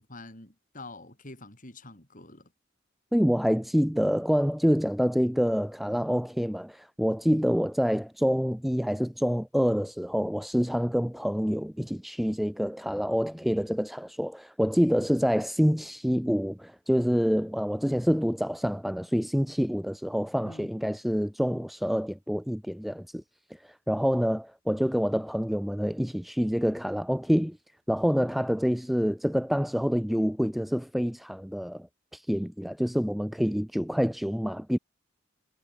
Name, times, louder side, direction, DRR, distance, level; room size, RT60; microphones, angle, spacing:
voice 1, 0.0-2.5 20.4-20.7, left 2 dB, 40° left, 5.3 m, -46 dB
voice 2, 3.1-23.2 23.6-27.6 27.9-34.8, equal, ahead, 0.3 m, -27 dB
head